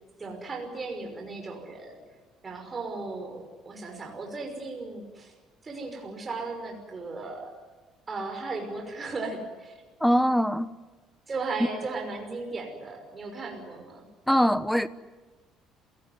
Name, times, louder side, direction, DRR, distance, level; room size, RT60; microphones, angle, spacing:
voice 1, 0.2-2.0 2.4-5.3 5.6-7.5 8.1-9.8 11.3-14.1, right 3 dB, 30° right, 5.7 m, -36 dB
voice 2, 10.0-10.7 14.3-14.9, equal, ahead, 1.1 m, -22 dB
27.5 x 17.5 x 9.7 m
cardioid pair, 105°, 0 cm